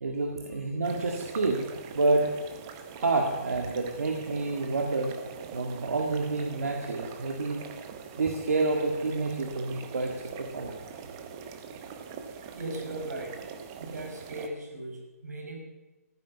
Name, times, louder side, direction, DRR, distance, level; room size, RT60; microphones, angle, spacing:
voice 1, 0.0-1.7 1.9-2.3 3.0-5.1 5.5-7.6 8.2-10.8, right 3 dB, 65° right, 1 dB, 2.0 m, -28 dB
sound 1, 0.8-14.5, right 6 dB, 15° right, 0.7 m, -43 dB
voice 2, 12.5-13.4 13.8-15.6, right 2 dB, 90° right, 2 dB, 5.1 m, -38 dB
14.5 x 9.8 x 7.0 m, 1.2 s
hypercardioid pair, 175°, 9 cm